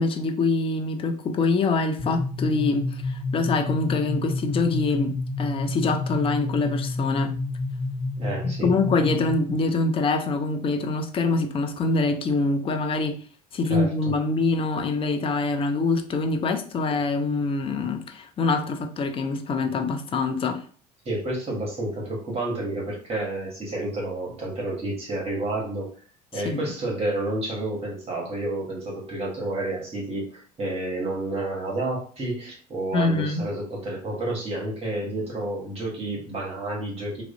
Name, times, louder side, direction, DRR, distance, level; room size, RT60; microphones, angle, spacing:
voice 1, 0.0-7.3 8.4-13.2 13.5-20.6 26.3-26.6 32.9-33.5, left 3 dB, 25° left, 6 dB, 0.4 m, -25 dB
sound 1, 2.0-9.5, left 2 dB, 10° left, 1.1 m, -29 dB
voice 2, 8.2-8.7 13.7-13.9 21.0-25.9 26.3-37.2, right 2 dB, 30° right, -3 dB, 1.0 m, -30 dB
2.4 x 2.1 x 2.5 m, 0.43 s
hypercardioid pair, 65°, 21 cm